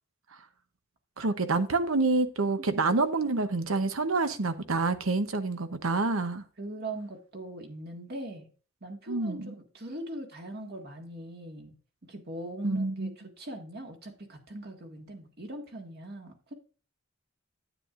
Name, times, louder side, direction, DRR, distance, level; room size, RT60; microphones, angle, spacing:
voice 1, 1.2-6.4 9.1-9.5 12.6-13.1, right 3 dB, 85° right, 0.9 m, -27 dB
voice 2, 6.6-8.5 8.8-11.7 12.0-16.5, right 1 dB, 50° right, 1.7 m, -41 dB
9.8 x 9.0 x 2.5 m
head